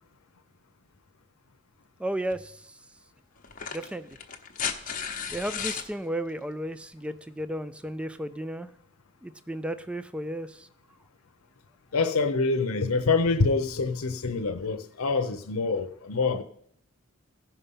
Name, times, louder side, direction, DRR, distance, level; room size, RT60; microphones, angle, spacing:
voice 1, 2.0-2.6 3.7-4.1 5.3-8.7 9.2-10.7, right 1 dB, 5° right, 0.3 m, -33 dB
sound 1, 2.3-2.4 3.4-5.9 7.4-7.5, left 7 dB, 40° left, 1.0 m, -34 dB
voice 2, 11.9-16.4, left 4 dB, 85° left, 0.7 m, -26 dB
16.5 x 5.6 x 5.4 m
head